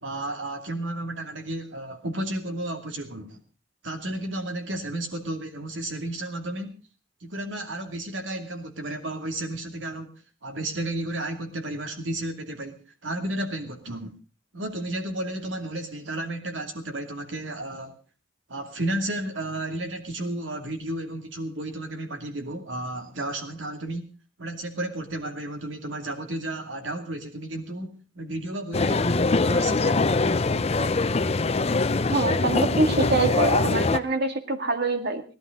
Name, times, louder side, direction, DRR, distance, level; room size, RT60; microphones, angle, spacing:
voice 1, 0.0-3.4 3.8-6.7 7.2-10.1 10.4-14.2 14.5-18.0 18.5-24.0 24.4-30.2, right 1 dB, 70° right, 6 dB, 2.6 m, -33 dB
sound 1, 28.7-34.0, left 3 dB, 35° left, 0.6 m, -23 dB
voice 2, 32.1-35.2, right 3 dB, 55° right, 7 dB, 1.9 m, -25 dB
17.0 x 12.0 x 5.2 m, 0.36 s
head